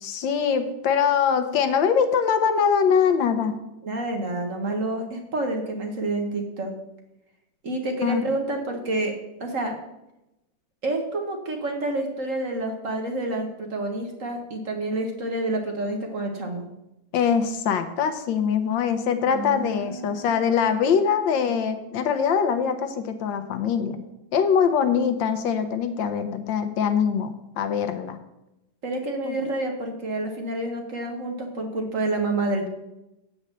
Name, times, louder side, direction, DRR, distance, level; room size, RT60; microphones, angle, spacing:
voice 1, 0.0-3.6 8.0-8.3 17.1-24.0 24.3-28.2 29.2-29.4, left 7 dB, 75° left, 9 dB, 1.4 m, -23 dB
voice 2, 3.8-6.7 7.6-9.8 10.8-16.7 19.3-20.4 28.8-32.7, right 2 dB, 45° right, 3 dB, 1.4 m, -28 dB
7.8 x 5.4 x 7.4 m, 0.91 s
omnidirectional pair, 2.2 m